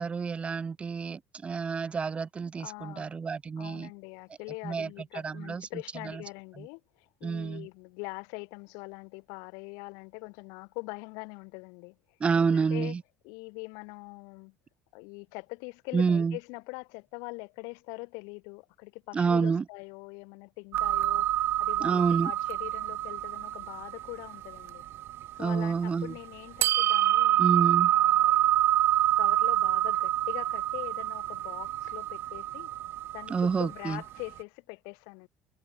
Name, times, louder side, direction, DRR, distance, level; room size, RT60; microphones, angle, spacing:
voice 1, 0.0-3.9 4.6-4.9 5.2-5.7 6.0-6.2 6.6-6.7 7.2-7.7 12.2-13.0 15.9-16.4 19.1-19.6 21.8-22.3 25.4-26.1 27.4-27.9 33.3-34.0, right 5 dB, 20° right, 1.1 m, -28 dB
voice 2, 2.6-3.1 3.6-12.0 12.5-12.9 13.2-14.5 14.9-24.8 25.3-27.4 27.8-28.6 29.2-32.7 33.1-35.3, left 34 dB, 85° left, 6.5 m, -43 dB
sound 1, 20.7-25.9 26.6-34.1, right 13 dB, 45° right, 0.4 m, -27 dB
cardioid pair, 155°, 6 cm